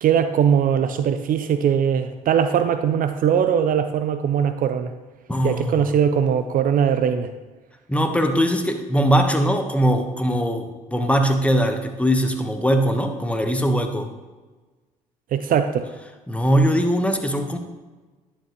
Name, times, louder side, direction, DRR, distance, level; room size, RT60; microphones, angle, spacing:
voice 1, 0.0-4.9 5.4-7.3 15.3-15.9, right 8 dB, 50° right, 10 dB, 0.5 m, -20 dB
voice 2, 5.3-5.8 7.9-14.1 16.3-17.6, equal, 5° left, 5 dB, 1.2 m, -21 dB
10.5 x 7.1 x 3.1 m, 1.3 s
hypercardioid pair, 55°, 18 cm